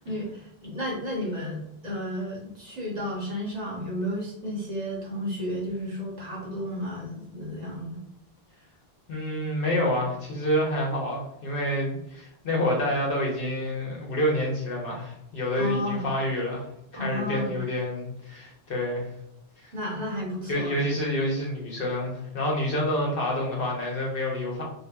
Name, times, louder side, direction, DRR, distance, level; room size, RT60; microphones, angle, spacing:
voice 1, 0.0-8.0 15.5-16.0 16.9-17.5 19.7-20.7, equal, 45° right, -4 dB, 1.0 m, -32 dB
voice 2, 9.1-16.6 16.9-19.1 19.6-19.7 20.5-24.6, left 1 dB, 60° left, -2 dB, 1.0 m, -28 dB
2.8 x 2.7 x 2.2 m, 0.79 s
omnidirectional pair, 1.1 m